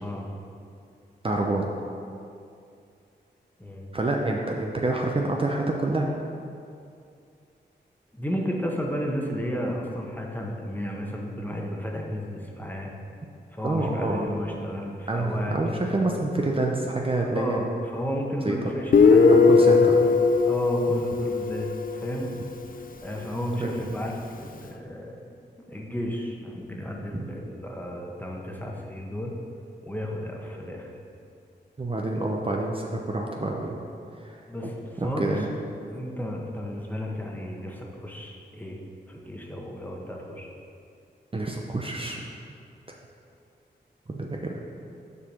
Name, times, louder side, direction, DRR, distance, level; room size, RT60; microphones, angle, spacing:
voice 1, 1.2-1.7 3.9-6.1 13.6-14.3 15.1-17.6 18.4-18.6 19.3-20.1 20.9-21.0 23.6-23.8 27.1-27.3 31.8-33.8 34.2-34.4 35.0-35.5 41.3-42.2 44.1-44.6, right 2 dB, 30° right, 0 dB, 0.7 m, -27 dB
voice 2, 3.6-3.9 8.1-12.9 13.5-16.1 17.3-19.8 20.4-22.3 23.0-25.2 25.6-29.3 29.8-30.9 34.5-35.5 35.9-38.8 39.1-40.5, equal, 10° left, -1 dB, 1.3 m, -33 dB
Guitar, 18.9-22.4, left 4 dB, 50° left, 0.6 m, -19 dB
6.9 x 4.8 x 6.1 m, 2.5 s
cardioid pair, 60°, 19 cm